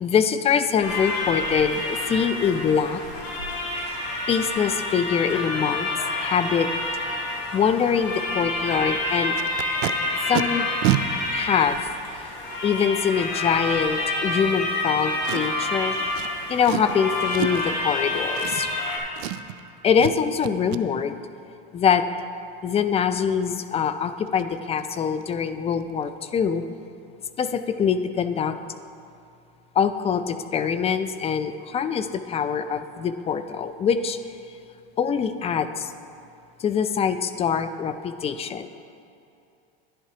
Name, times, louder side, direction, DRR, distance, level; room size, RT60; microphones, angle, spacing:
voice 1, 0.0-3.0 4.3-5.9 6.2-6.7 7.5-9.4 10.3-10.7 11.3-11.8 12.6-15.9 16.5-18.7 19.8-21.1 21.7-22.0 22.6-26.6 27.4-28.6 29.8-34.2 35.0-35.9 36.6-38.7, left 7 dB, 20° left, 11 dB, 0.3 m, -24 dB
sound 1, 0.8-19.0, left 2 dB, 80° left, 2.4 m, -28 dB
Packing tape duct tape, 9.4-9.9 10.3-10.4 10.8-11.0 11.8-11.9 15.2-15.7 16.1-16.3 16.6-16.9 17.3-17.7 18.3-18.9 19.2-19.6 20.0-20.2 20.4-20.8 23.9-24.0 24.3-24.4 24.8-24.9 25.2-25.5 25.7-25.8, right 16 dB, 80° right, 0.5 m, -28 dB
11.0 x 10.5 x 2.8 m, 2.6 s
supercardioid pair, 115°, 31 cm